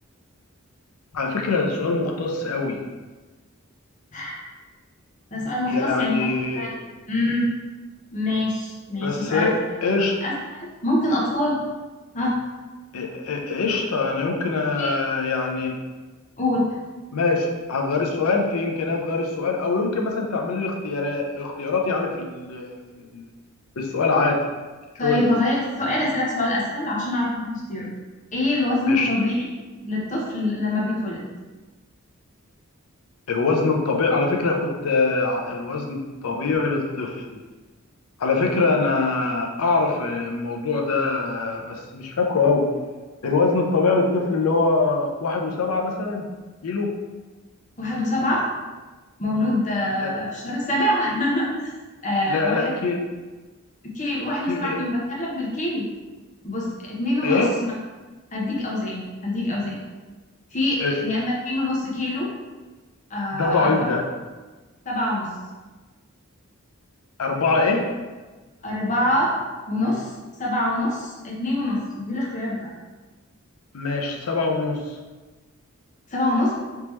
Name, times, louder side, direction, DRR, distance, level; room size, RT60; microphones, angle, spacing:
voice 1, 1.1-2.8 5.7-6.7 9.0-10.2 12.9-15.8 17.1-23.3 23.8-24.4 25.0-25.3 28.9-29.1 33.3-37.4 38.2-42.7 43.2-46.3 46.6-46.9 50.0-50.1 52.3-53.0 54.5-54.8 57.2-57.5 60.8-61.0 63.3-64.0 67.2-67.9 73.7-75.0, left 3 dB, 90° left, 1 dB, 0.6 m, -23 dB
voice 2, 5.3-6.3 6.5-6.7 7.1-7.5 8.1-9.5 10.2-11.6 12.1-12.4 14.7-15.0 16.4-16.7 25.0-27.9 28.3-29.5 29.8-31.3 47.8-48.5 49.2-51.7 52.0-52.7 53.8-55.9 56.4-57.7 58.3-59.8 60.5-62.3 63.1-63.8 64.8-65.3 68.6-69.4 69.7-70.1 70.4-72.7 76.1-76.5, left 1 dB, 35° left, -3 dB, 0.9 m, -25 dB
3.5 x 2.9 x 3.1 m, 1.3 s
head